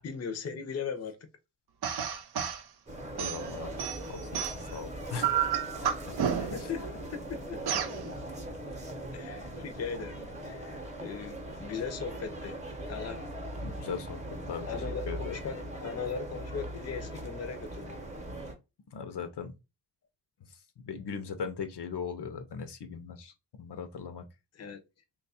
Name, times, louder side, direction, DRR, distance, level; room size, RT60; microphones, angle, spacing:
voice 1, 0.0-1.2 6.4-7.8 9.1-10.1 10.4-12.6 12.9-13.2 14.7-18.0 24.6-24.8, left 6 dB, 40° left, 0.5 m, -38 dB
sound 1, 1.8-2.6 3.2-4.8 5.2-6.7 7.7-8.0, right 9 dB, 65° right, 0.6 m, -31 dB
sound 2, 2.9-18.5, right 1 dB, 15° right, 0.7 m, -40 dB
voice 2, 3.2-5.5 13.6-14.2 14.5-15.4 18.9-19.5 20.5-20.6 20.8-23.3 23.6-24.2, left 6 dB, 75° left, 0.7 m, -39 dB
3.0 x 2.3 x 4.0 m
wide cardioid pair, 130°, 41 cm